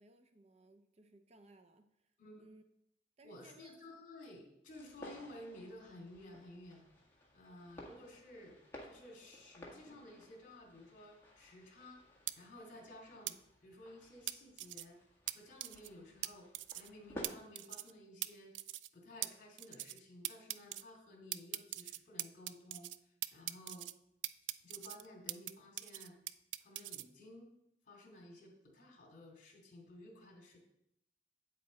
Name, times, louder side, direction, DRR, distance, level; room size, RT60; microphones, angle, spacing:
voice 1, 0.0-2.6 3.2-3.7, right 2 dB, 35° right, 8 dB, 0.6 m, -62 dB
voice 2, 3.2-6.8 7.3-12.0 12.4-15.0 15.3-16.5 16.7-18.5 18.9-23.9 24.6-26.2 26.6-27.5 27.9-30.6, left 1 dB, 50° left, 1 dB, 2.6 m, -54 dB
sound 1, 4.7-17.2, left 1 dB, 15° left, 1.7 m, -56 dB
sound 2, 12.3-12.4 13.3-13.4 14.3-14.8 15.3-15.4 15.6-15.9 16.2-16.3 16.5-16.9 17.2-17.3 17.5-17.9 18.2-18.3 18.5-18.9 19.2-19.3 19.6-20.0 20.2-20.8 21.3-23.0 23.2-23.9 24.2-25.5 25.8-27.0, right 14 dB, 85° right, 0.3 m, -41 dB
8.4 x 7.6 x 4.2 m, 0.78 s
head